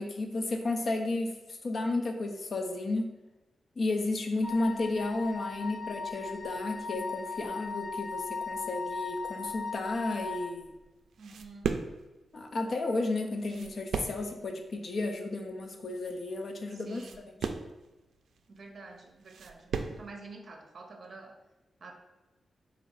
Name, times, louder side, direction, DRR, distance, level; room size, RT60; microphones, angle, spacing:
voice 1, 0.0-1.4 1.6-3.1 3.8-10.7 12.3-17.0, left 2 dB, 45° left, 4 dB, 0.5 m, -32 dB
Wind instrument woodwind instrument, 4.4-10.5, left 4 dB, 30° left, 1.4 m, -38 dB
sound 1, 10.6-20.1, right 5 dB, 80° right, 0.3 m, -38 dB
voice 2, 11.2-11.8 16.7-17.3 18.5-21.4 21.8-21.9, right 3 dB, 45° right, 3 dB, 0.7 m, -48 dB
4.1 x 2.5 x 4.7 m, 1.1 s
wide cardioid pair, 150°, 0 cm